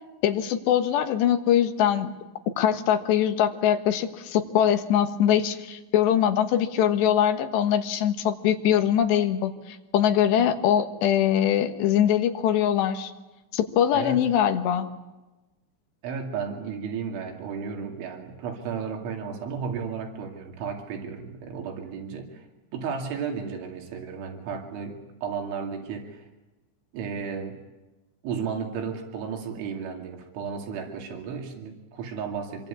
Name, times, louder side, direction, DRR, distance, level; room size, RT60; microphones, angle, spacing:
voice 1, 0.2-2.1 2.6-13.1 13.5-14.9, left 10 dB, 75° left, 7 dB, 3.5 m, -22 dB
voice 2, 13.9-14.2 16.0-22.4 22.7-26.3 26.9-27.6 28.2-32.7, right 6 dB, 85° right, 3 dB, 4.9 m, -33 dB
26.0 x 23.5 x 8.4 m, 1.1 s
omnidirectional pair, 5.3 m